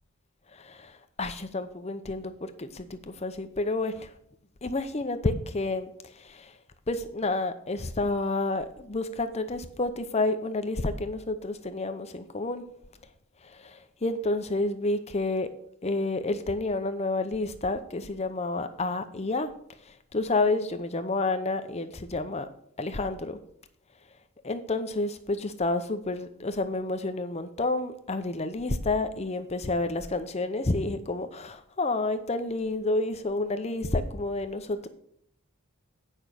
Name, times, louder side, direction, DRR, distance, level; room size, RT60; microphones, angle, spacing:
voice 1, 0.5-4.1 4.6-6.5 6.9-12.6 13.4-15.5 15.8-19.5 19.8-22.5 22.8-23.4 24.4-34.9, left 2 dB, 30° left, 9 dB, 0.7 m, -30 dB
9.1 x 5.5 x 6.4 m, 0.70 s
head